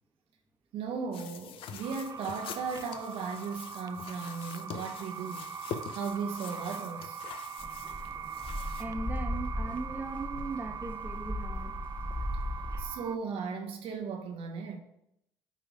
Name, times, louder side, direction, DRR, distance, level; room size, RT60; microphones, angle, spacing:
voice 1, 0.7-5.5 5.9-7.2 12.8-14.8, right 5 dB, 60° right, 4 dB, 0.9 m, -36 dB
sound 1, 1.1-8.8, left 7 dB, 60° left, 0.6 m, -45 dB
sound 2, 1.8-13.2, right 7 dB, 35° right, 0.4 m, -42 dB
sound 3, 7.6-12.8, left 1 dB, 10° left, 1.2 m, -37 dB
voice 2, 8.8-11.8 12.6-12.7, right 3 dB, 15° right, 4 dB, 1.2 m, -39 dB
8.3 x 3.4 x 4.8 m, 0.79 s
hypercardioid pair, 55°, 10 cm